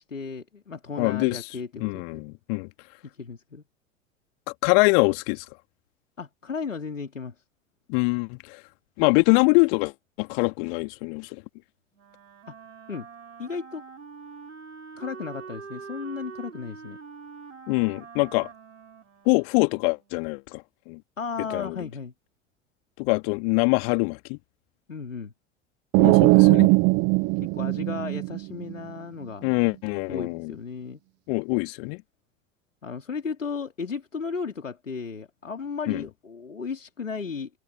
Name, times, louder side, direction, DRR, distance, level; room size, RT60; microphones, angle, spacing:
voice 1, 0.0-2.2 3.1-3.6 6.2-7.3 12.5-12.6 12.9-13.1 13.4-13.8 14.9-17.0 21.2-22.1 24.9-25.3 27.4-29.5 30.1-31.0 32.8-37.5, left 5 dB, 85° left, 3.3 m, -35 dB
voice 2, 1.0-1.4 1.8-2.7 4.6-5.4 7.9-8.6 9.0-9.9 10.2-11.4 17.7-18.5 19.3-20.6 20.9-21.0 21.5-21.8 23.0-24.4 26.0-26.7 29.4-30.5 31.3-32.0 35.9-36.0, left 33 dB, 50° left, 2.4 m, -24 dB
Wind instrument woodwind instrument, 11.9-20.2, right 5 dB, 80° right, 5.5 m, -44 dB
sound 1, 25.9-28.7, right 28 dB, 45° right, 1.0 m, -19 dB
figure-of-eight pair, 80°, 37 cm